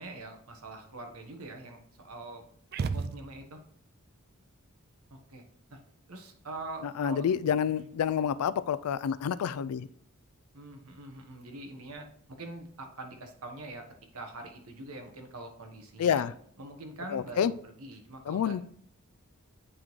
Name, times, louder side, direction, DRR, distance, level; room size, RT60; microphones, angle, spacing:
voice 1, 0.0-2.5 2.8-3.6 5.1-5.4 5.7-5.8 6.1-7.3 10.5-13.9 14.1-16.3 16.6-18.6, right 2 dB, 80° right, 4 dB, 1.2 m, -44 dB
sound 1, 2.7-3.7, right 4 dB, 45° right, 0.3 m, -34 dB
voice 2, 7.0-9.9 16.0-16.3 17.1-17.5 18.3-18.6, left 8 dB, 85° left, 16 dB, 0.3 m, -28 dB
9.5 x 3.7 x 3.1 m, 0.64 s
head